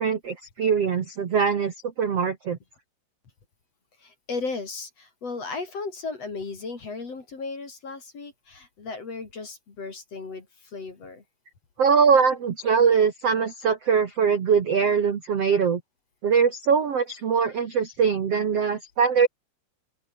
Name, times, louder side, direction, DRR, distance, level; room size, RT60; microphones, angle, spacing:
voice 1, 0.0-2.6 11.8-15.8 16.2-19.3, right 6 dB, 75° right, 1.4 m, -22 dB
voice 2, 4.0-11.2, left 4 dB, 35° left, 3.9 m, -35 dB
open air
omnidirectional pair, 5.7 m